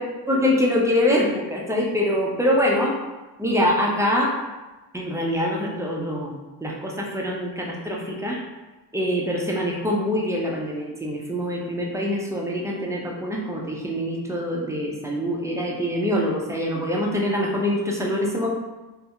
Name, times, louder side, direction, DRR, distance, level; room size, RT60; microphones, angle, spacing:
voice 1, 0.3-3.0 3.4-4.3 4.9-8.4 8.9-18.5, left 1 dB, 5° right, -2 dB, 0.5 m, -24 dB
2.6 x 2.1 x 2.4 m, 1.1 s
supercardioid pair, 50°, 41 cm